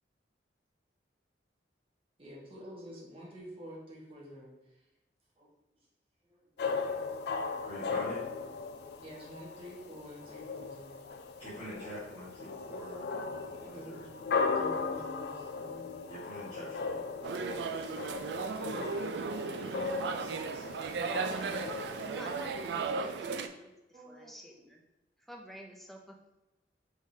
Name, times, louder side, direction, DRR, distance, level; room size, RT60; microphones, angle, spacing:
voice 1, 2.2-4.5 5.4-5.5 6.3-6.4 9.0-11.0 13.7-14.1 14.5-16.0 17.1-17.2 22.1-22.3 23.9-24.7, equal, 30° right, -5 dB, 1.3 m, -49 dB
sound 1, 6.6-22.9, left 4 dB, 60° left, 0.3 m, -37 dB
voice 2, 7.6-8.2 11.4-13.1 13.4-14.0 16.1-18.4 20.0-21.7, equal, 30° left, -13 dB, 1.4 m, -47 dB
sound 2, 17.2-23.5, right 4 dB, 70° right, 0.3 m, -36 dB
voice 3, 22.0-24.8 25.2-26.3, equal, ahead, 0 dB, 0.5 m, -50 dB
4.8 x 3.6 x 2.7 m, 1.0 s
head